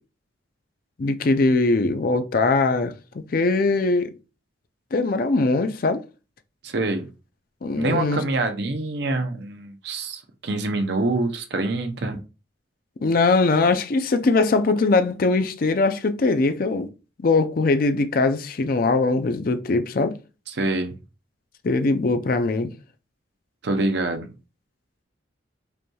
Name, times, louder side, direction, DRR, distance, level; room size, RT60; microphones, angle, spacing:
voice 1, 1.0-2.9 3.3-4.1 4.9-6.0 7.6-8.2 13.0-16.9 17.2-20.2 21.6-22.7, left 3 dB, 45° left, 0.4 m, -21 dB
voice 2, 6.6-7.1 7.8-12.2 20.5-21.0 23.6-24.3, right 2 dB, 55° right, 0.6 m, -25 dB
5.1 x 3.1 x 2.3 m
head